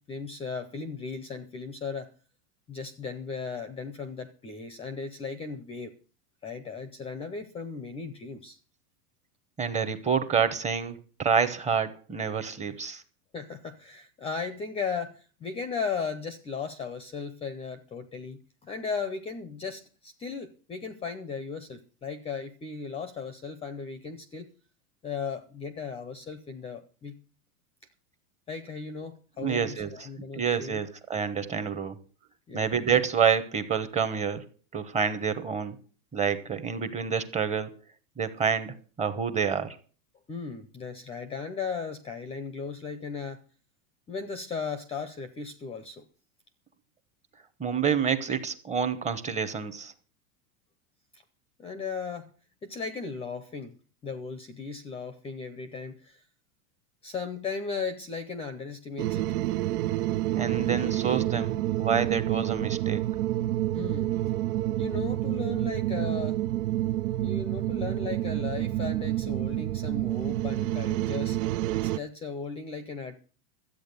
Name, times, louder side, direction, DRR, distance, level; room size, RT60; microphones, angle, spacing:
voice 1, 0.1-2.1 2.7-5.9 6.4-8.6 13.3-24.5 25.0-27.2 28.5-30.8 32.5-32.7 40.3-43.4 44.1-46.0 51.1-51.2 51.6-52.3 52.6-53.7 54.0-56.2 57.0-59.3 63.7-64.1 64.8-66.4 67.2-71.4 71.7-73.2, left 5 dB, 15° left, 0.6 m, -36 dB
voice 2, 9.6-13.0 29.4-30.1 30.3-32.0 32.5-34.4 34.7-35.8 36.1-37.7 38.2-39.8 47.6-49.9 60.3-63.0, right 6 dB, 15° right, 1.0 m, -28 dB
sound 1, 59.0-72.0, right 15 dB, 75° right, 0.6 m, -28 dB
13.0 x 8.5 x 6.8 m
supercardioid pair, 145°, 46 cm